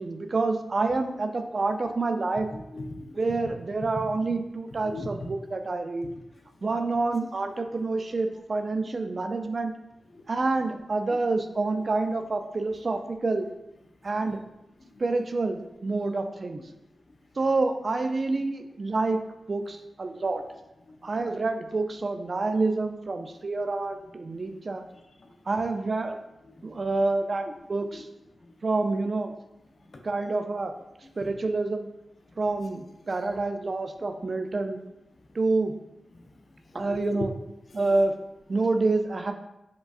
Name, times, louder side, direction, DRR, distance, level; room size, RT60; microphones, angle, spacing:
voice 1, 0.0-2.5 3.2-6.1 6.6-9.7 10.3-13.5 14.0-14.4 15.0-16.6 17.4-19.2 19.5-20.4 21.0-24.8 25.5-26.2 26.6-28.1 28.6-29.3 30.0-30.7 31.2-31.9 32.4-34.8 35.3-35.7 36.7-37.3 37.7-38.1 38.5-39.3, right 3 dB, 55° right, 6 dB, 0.3 m, -27 dB
voice 2, 2.5-3.5 4.8-5.3 6.3-6.7 10.1-10.3 11.1-11.2 14.0-14.4 14.8-15.0 16.7-17.1 20.8-21.3 24.3-24.5 24.9-25.6 26.4-26.9 27.9-28.1 28.3-28.6 29.7-30.1 31.0-31.4 32.3-32.4 35.1-35.4 36.1-37.3 37.7-37.9, left 2 dB, 60° left, 4 dB, 0.4 m, -43 dB
4.8 x 2.3 x 2.4 m, 0.91 s
cardioid pair, 45°, 0 cm